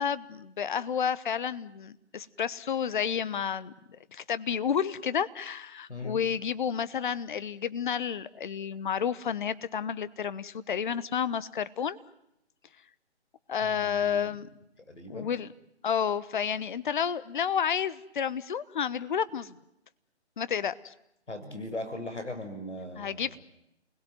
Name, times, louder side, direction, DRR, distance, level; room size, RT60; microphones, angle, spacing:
voice 1, 0.0-3.7 4.1-12.0 13.5-14.5 15.1-15.5 15.8-19.6 20.4-20.9 23.0-23.4, left 7 dB, 45° left, 16 dB, 1.1 m, -30 dB
voice 2, 5.9-6.2 13.6-14.4 14.9-15.3 21.3-23.4, left 2 dB, 85° left, 8 dB, 6.3 m, -39 dB
28.5 x 21.0 x 9.2 m, 0.81 s
figure-of-eight pair, 150°, 34 cm